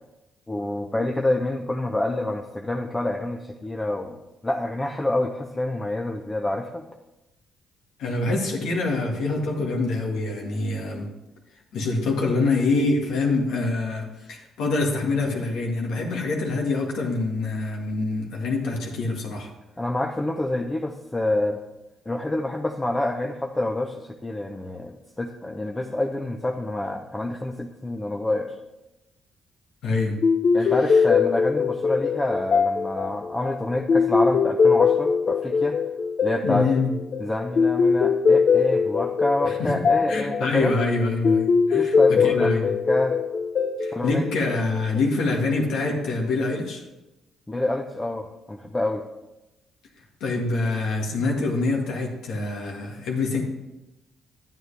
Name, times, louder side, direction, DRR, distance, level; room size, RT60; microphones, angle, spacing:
voice 1, 0.5-4.2 4.4-6.9 19.8-21.6 22.1-28.6 30.5-35.8 36.2-36.7 37.2-40.7 41.7-43.2 43.9-44.2 47.5-49.0, left 1 dB, 15° left, 2 dB, 0.7 m, -27 dB
voice 2, 8.0-11.1 11.7-19.5 29.8-30.2 30.6-30.7 36.4-36.9 39.4-42.7 43.8-46.8 50.2-53.4, left 3 dB, 80° left, 0 dB, 1.8 m, -25 dB
sound 1, 30.2-45.0, left 5 dB, 50° left, 0.5 m, -22 dB
10.5 x 9.3 x 3.4 m, 0.98 s
cardioid pair, 90°, 0 cm